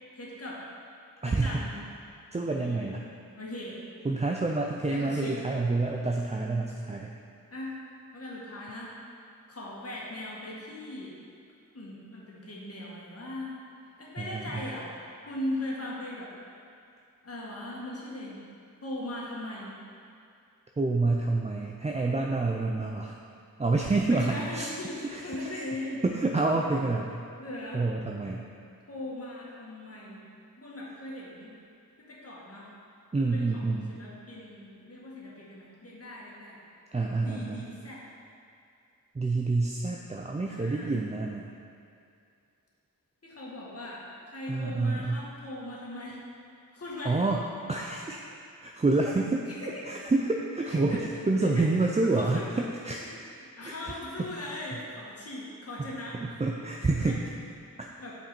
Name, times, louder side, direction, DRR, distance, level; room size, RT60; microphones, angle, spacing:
voice 1, 0.1-0.6 1.2-1.7 2.6-2.9 3.4-3.8 4.9-5.4 7.5-7.7 8.1-9.0 9.5-11.1 11.7-13.6 14.0-14.9 15.3-16.3 17.2-18.4 18.8-19.7 24.1-26.0 27.4-27.9 28.9-30.2 30.6-31.5 32.0-32.7 33.2-33.6 33.9-36.6 37.2-38.0 40.4-41.0 43.2-46.2 46.7-47.2 49.5-49.8 50.6-51.0 51.4-52.5 53.6-56.4 56.8-57.1 58.0-58.1, left 1 dB, 45° left, -5 dB, 1.9 m, -39 dB
voice 2, 1.2-1.6 2.3-3.0 4.0-7.1 14.2-14.7 20.8-23.2 23.6-24.7 25.0-25.5 26.0-27.2 27.7-28.4 33.1-33.9 36.9-37.6 39.1-41.5 44.5-45.2 47.0-47.4 47.7-48.2 48.6-49.5 49.9-53.0 53.6-53.9 55.8-55.9 56.2-57.2 57.8-57.9, right 3 dB, 20° right, 0 dB, 0.5 m, -28 dB
7.3 x 5.8 x 4.5 m, 2.4 s
wide cardioid pair, 65°, 34 cm